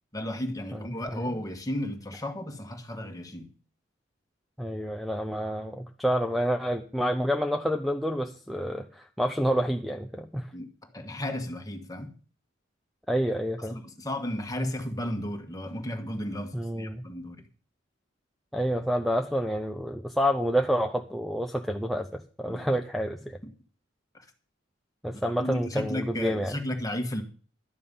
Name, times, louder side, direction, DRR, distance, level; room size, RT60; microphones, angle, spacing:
voice 1, 0.1-3.5 10.5-12.1 13.6-17.5 22.4-22.7 23.4-23.5 25.1-27.2, left 1 dB, 20° left, 4 dB, 1.6 m, -34 dB
voice 2, 4.6-10.5 13.1-13.8 14.6-14.7 16.5-17.0 18.5-23.4 25.0-26.5, equal, ahead, 6 dB, 0.7 m, -28 dB
12.5 x 9.1 x 5.4 m, 0.39 s
head